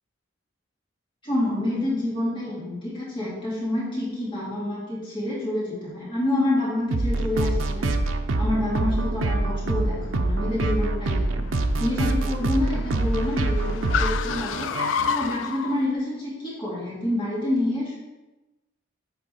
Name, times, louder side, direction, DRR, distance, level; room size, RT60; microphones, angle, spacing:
voice 1, 1.2-7.9 8.4-11.4 11.8-14.7 15.1-18.0, left 1 dB, 25° left, -8 dB, 2.4 m, -28 dB
Car, 6.9-15.8, left 7 dB, 70° left, 0.4 m, -33 dB
sound 1, 6.9-15.3, right 2 dB, 90° right, 0.6 m, -25 dB
8.4 x 4.4 x 4.2 m, 1.1 s
head